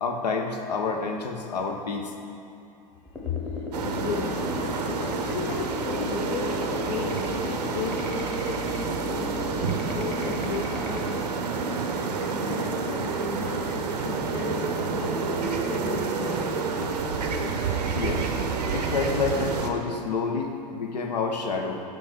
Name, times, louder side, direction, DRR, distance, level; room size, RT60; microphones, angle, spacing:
voice 1, 0.0-2.1 17.9-18.2 18.7-21.8, left 4 dB, 80° left, 3 dB, 0.7 m, -28 dB
voice 2, 2.9-11.8 12.2-17.4, left 8 dB, 50° left, 4 dB, 0.4 m, -36 dB
sound 1, 3.0-11.0, left 2 dB, 5° left, 0.9 m, -36 dB
sound 2, 3.7-19.7, right 5 dB, 75° right, 0.6 m, -29 dB
4.7 x 4.6 x 5.4 m, 2.6 s
hypercardioid pair, 95°, 21 cm